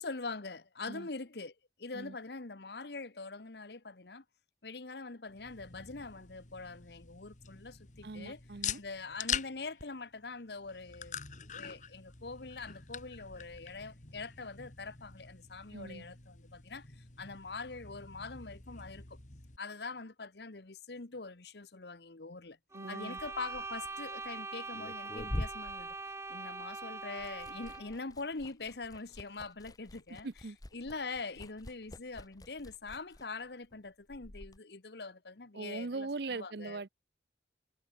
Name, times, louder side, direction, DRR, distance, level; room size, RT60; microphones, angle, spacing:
voice 1, 0.0-4.2 4.6-8.4 8.7-11.2 11.5-19.2 19.6-22.6 22.9-25.9 26.3-30.3 30.7-36.8, left 3 dB, 60° left, 1.2 m, -43 dB
sound 1, 5.3-19.6, left 8 dB, 45° left, 2.1 m, -45 dB
voice 2, 8.0-8.8 15.7-16.0 22.7-23.2 30.2-30.6 35.5-36.9, right 3 dB, 60° right, 0.7 m, -41 dB
sound 2, 22.7-28.0, right 3 dB, 15° right, 2.2 m, -42 dB
Liquid, 23.0-26.7 27.0-34.6, left 1 dB, 20° left, 0.9 m, -46 dB
head